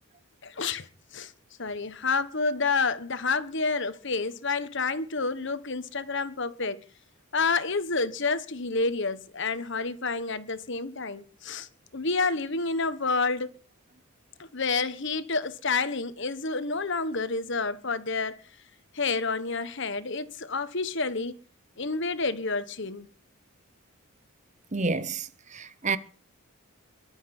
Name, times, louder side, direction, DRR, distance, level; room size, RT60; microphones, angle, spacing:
voice 1, 0.4-0.9 1.1-1.3 1.6-6.8 7.3-13.5 14.4-18.4 18.9-21.4 21.8-23.1, left 4 dB, 55° left, 1.4 m, -29 dB
voice 2, 24.7-26.0, right 4 dB, 35° right, 0.9 m, -29 dB
23.5 x 7.8 x 6.1 m
head